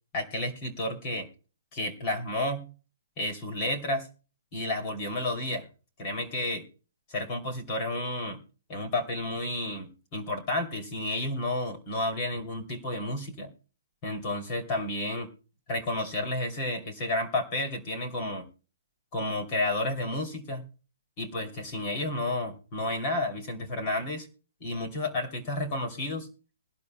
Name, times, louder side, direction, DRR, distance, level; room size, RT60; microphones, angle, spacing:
voice 1, 0.1-1.3 1.7-2.7 3.2-4.1 4.5-5.7 6.0-6.7 7.1-8.4 8.7-13.5 14.0-15.3 15.7-18.5 19.1-20.6 21.2-24.3 24.6-26.3, left 1 dB, 25° left, 3 dB, 2.8 m, -31 dB
22.0 x 12.0 x 2.2 m, 0.36 s
hypercardioid pair, 175°, 0 cm